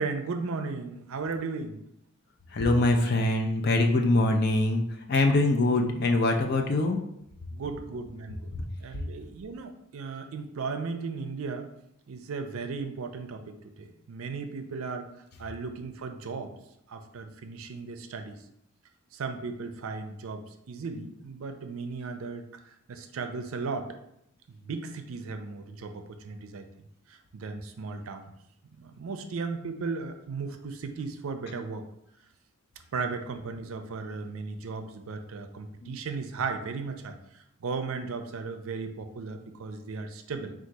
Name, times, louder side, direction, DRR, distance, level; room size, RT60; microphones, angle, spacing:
voice 1, 0.0-1.8 7.5-8.5 8.8-11.7 12.1-15.1 15.4-16.5 16.9-18.4 19.1-24.0 24.5-26.7 27.1-28.2 28.8-31.9 32.9-37.2 37.6-40.5, right 4 dB, 70° right, 7 dB, 0.4 m, -36 dB
voice 2, 2.5-7.0 8.5-8.6 35.8-36.0, left 2 dB, 50° left, 3 dB, 0.5 m, -24 dB
3.8 x 2.4 x 4.6 m, 0.77 s
head